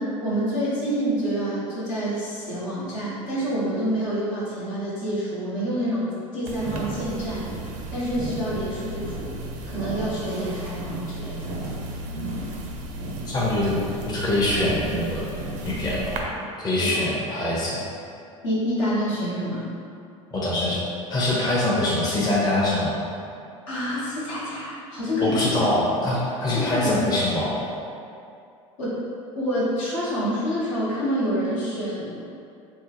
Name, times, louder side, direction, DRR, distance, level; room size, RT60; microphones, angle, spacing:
voice 1, 0.0-7.5 7.9-9.4 9.7-11.5 16.7-17.1 18.4-19.7 23.7-25.4 26.5-26.9 28.8-29.1 29.3-32.2, equal, 70° left, -9 dB, 1.2 m, -27 dB
sound 1, 6.5-16.2, right 2 dB, 55° right, 0.5 m, -33 dB
voice 2, 13.3-13.7 14.1-15.3 15.6-16.2 16.6-17.8 20.3-20.8 21.1-23.0 25.2-27.6, left 1 dB, 25° left, -7 dB, 0.7 m, -23 dB
3.5 x 2.1 x 2.9 m, 2.5 s
hypercardioid pair, 80°, 17 cm